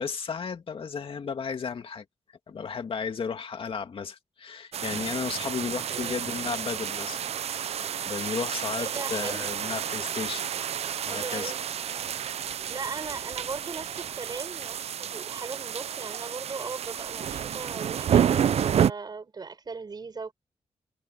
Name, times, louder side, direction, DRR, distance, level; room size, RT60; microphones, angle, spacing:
voice 1, 0.0-2.0 2.5-7.3 7.6-10.5 11.1-11.5, left 6 dB, 55° left, 2.3 m, -34 dB
sound 1, 4.7-18.9, right 9 dB, 70° right, 0.5 m, -30 dB
voice 2, 5.9-6.2 8.8-9.5 11.1-11.7 12.7-20.3, right 4 dB, 40° right, 5.1 m, -38 dB
wide cardioid pair, 140°, 11 cm